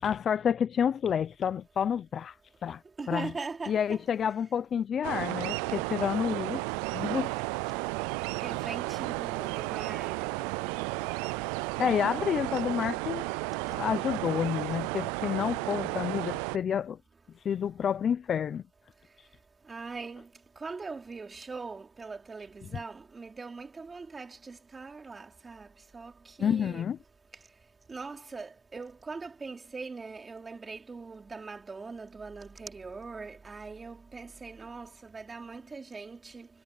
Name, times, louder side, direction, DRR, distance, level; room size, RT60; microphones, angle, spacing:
voice 1, 0.0-2.4 2.6-2.8 3.1-3.3 3.7-6.6 6.9-7.3 11.8-13.2 13.7-17.0 17.4-18.6 26.4-27.0, left 8 dB, 30° left, 0.5 m, -29 dB
voice 2, 3.0-4.0 8.4-10.1 19.7-20.3 20.6-25.7 25.9-26.1 26.4-26.9 27.9-36.5, right 4 dB, 15° right, 4.7 m, -41 dB
sound 1, 5.0-16.6, right 27 dB, 80° right, 0.3 m, -33 dB
cardioid pair, 140°, 0 cm